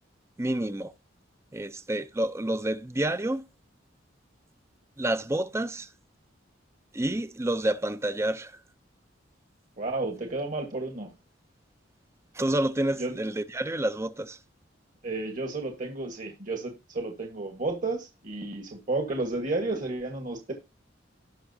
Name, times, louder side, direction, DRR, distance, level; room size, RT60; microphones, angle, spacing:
voice 1, 0.4-0.9 1.5-3.4 5.0-5.9 6.9-8.5 12.3-14.4, right 1 dB, 15° right, 0.5 m, -29 dB
voice 2, 9.8-11.1 13.0-13.2 15.0-20.5, right 2 dB, 45° right, 1.4 m, -32 dB
18.0 x 6.1 x 2.7 m
head